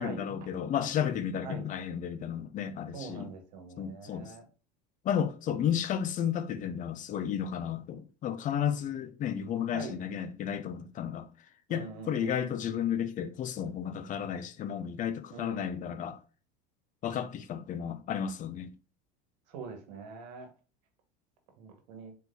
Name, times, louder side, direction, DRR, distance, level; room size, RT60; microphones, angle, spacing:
voice 1, 0.0-3.3 3.8-4.3 5.0-11.3 11.7-16.2 17.0-18.7, left 9 dB, 40° left, 0.6 m, -33 dB
voice 2, 2.9-4.4 9.7-10.0 11.7-12.7 15.3-15.8 19.5-20.5 21.6-22.1, right 5 dB, 85° right, 1.4 m, -43 dB
4.3 x 4.0 x 2.6 m
supercardioid pair, 110°, 21 cm